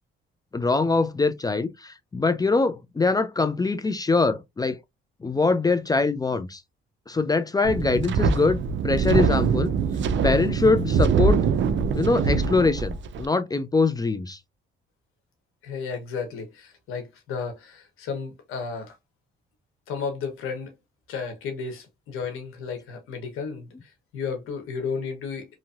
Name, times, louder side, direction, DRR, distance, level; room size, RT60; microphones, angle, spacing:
voice 1, 0.5-4.8 5.2-6.6 7.1-9.7 10.2-11.4 11.9-14.4, left 3 dB, 20° left, 0.3 m, -23 dB
Wind, 7.6-13.3, right 5 dB, 65° right, 0.5 m, -23 dB
voice 2, 15.6-19.0 19.9-20.7 21.1-25.6, left 5 dB, 90° left, 1.0 m, -33 dB
3.0 x 2.6 x 2.4 m
cardioid pair, 90°, 21 cm